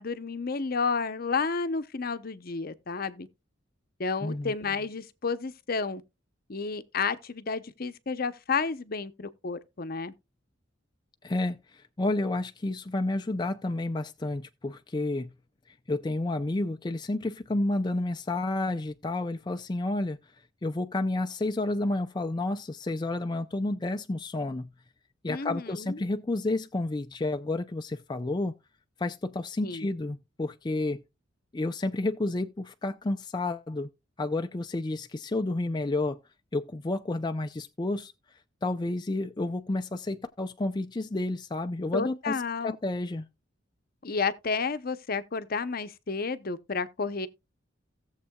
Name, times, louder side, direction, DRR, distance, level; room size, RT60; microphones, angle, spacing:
voice 1, 0.0-3.3 4.0-6.0 6.5-10.1 25.3-26.0 29.6-29.9 41.9-42.8 44.0-47.3, left 4 dB, 50° left, 0.8 m, -31 dB
voice 2, 4.2-4.5 11.2-15.3 15.9-20.2 20.6-24.7 25.2-28.5 29.0-31.0 31.5-33.9 34.2-36.2 36.5-38.1 38.6-42.4 42.6-43.3, left 2 dB, 25° left, 0.5 m, -30 dB
17.0 x 7.4 x 2.3 m
head